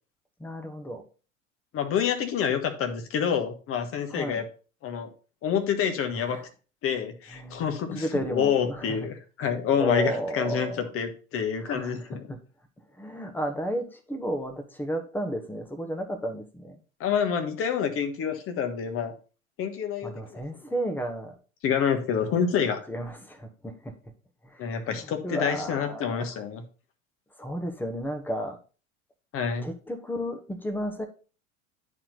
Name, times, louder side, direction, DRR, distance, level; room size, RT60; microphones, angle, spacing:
voice 1, 0.4-1.0 4.1-4.4 6.1-6.4 7.3-7.6 7.9-9.1 9.8-10.9 11.6-12.4 13.0-16.8 20.0-21.4 22.9-23.9 24.4-26.3 27.4-28.6 29.6-31.1, equal, 5° left, 6 dB, 1.1 m, -33 dB
voice 2, 1.7-4.5 4.8-5.1 5.4-6.4 6.8-12.2 17.0-19.1 19.6-20.4 21.6-22.8 24.6-26.6 29.3-29.7, left 7 dB, 35° left, 7 dB, 1.4 m, -27 dB
9.9 x 4.4 x 3.9 m, 0.36 s
figure-of-eight pair, 80°, 40 cm